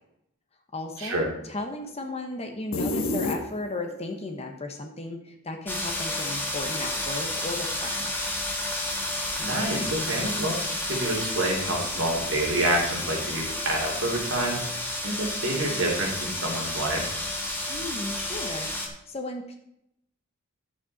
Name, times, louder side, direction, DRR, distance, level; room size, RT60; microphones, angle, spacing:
voice 1, 0.7-8.1 17.7-19.6, left 2 dB, 30° left, 4 dB, 1.1 m, -35 dB
sound 1, 2.7-4.0, left 2 dB, 75° left, 1.2 m, -28 dB
sound 2, 5.7-18.9, left 1 dB, 10° left, 1.4 m, -31 dB
voice 2, 9.4-10.6 10.9-14.6 15.0-17.0, right 1 dB, 60° right, -2 dB, 2.9 m, -27 dB
10.5 x 8.3 x 4.2 m, 0.79 s
head